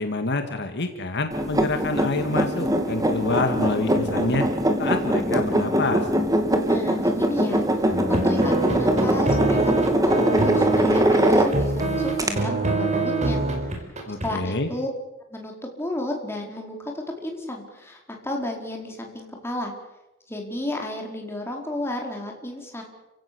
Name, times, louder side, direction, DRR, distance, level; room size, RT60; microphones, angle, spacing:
voice 1, 0.0-4.5 4.8-6.1 14.1-14.7, left 2 dB, 55° left, 6 dB, 1.9 m, -27 dB
sound 1, 1.3-11.8 12.2-12.3, equal, 15° right, 2.4 m, -22 dB
voice 2, 6.6-13.4 13.7-13.9 14.2-14.9 15.3-19.7 20.3-22.8, left 1 dB, 10° left, 1 dB, 4.5 m, -32 dB
sound 2, 7.9-14.3, right 3 dB, 35° right, 4.6 m, -25 dB
30.0 x 16.5 x 6.9 m, 0.98 s
head